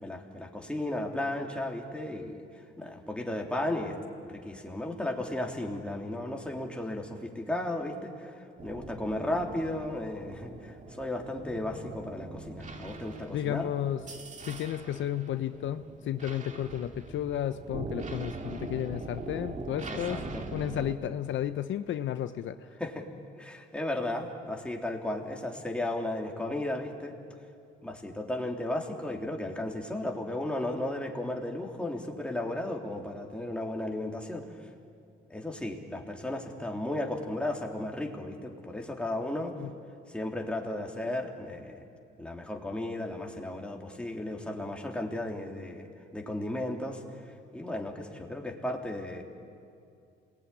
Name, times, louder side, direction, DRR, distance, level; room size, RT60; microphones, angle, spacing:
voice 1, 0.0-2.4 2.8-4.0 4.3-13.7 19.9-20.4 22.8-23.1 23.4-27.1 27.8-34.4 35.3-39.5 40.1-41.8 42.2-47.0 47.5-49.2, left 1 dB, 5° left, 1 dB, 3.4 m, -34 dB
sound 1, 8.6-21.0, right 3 dB, 40° right, 2.4 m, -42 dB
voice 2, 13.3-14.0 14.5-20.2 20.5-22.6 39.6-39.7, left 11 dB, 75° left, 10 dB, 0.9 m, -32 dB
27.5 x 19.5 x 10.0 m, 2.5 s
cardioid pair, 90°, 20 cm